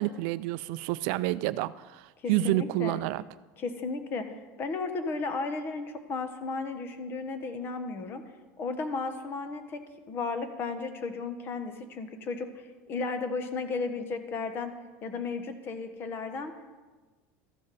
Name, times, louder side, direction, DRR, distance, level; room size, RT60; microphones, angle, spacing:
voice 1, 0.0-3.2, right 15 dB, 70° right, 16 dB, 0.4 m, -29 dB
voice 2, 2.2-3.0 3.6-8.2 8.6-14.7 15.0-16.5, left 4 dB, 35° left, 8 dB, 1.2 m, -34 dB
14.0 x 11.5 x 4.2 m, 1.3 s
cardioid pair, 150°, 7 cm